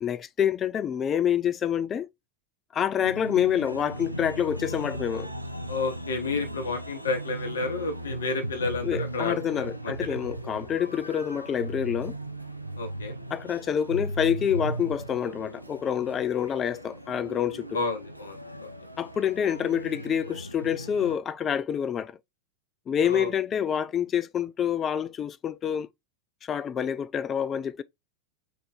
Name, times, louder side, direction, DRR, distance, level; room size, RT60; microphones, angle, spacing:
voice 1, 0.0-2.1 2.7-5.3 8.8-12.1 13.3-17.8 19.0-22.2 22.9-25.9 26.4-27.8, left 9 dB, 25° left, 0.3 m, -27 dB
sound 1, 3.0-21.2, right 1 dB, 90° right, 0.5 m, -37 dB
voice 2, 5.7-10.2 12.8-13.1 17.7-18.4 23.0-23.3, left 3 dB, 65° left, 1.0 m, -31 dB
3.9 x 3.0 x 3.9 m
figure-of-eight pair, 90°, 0 cm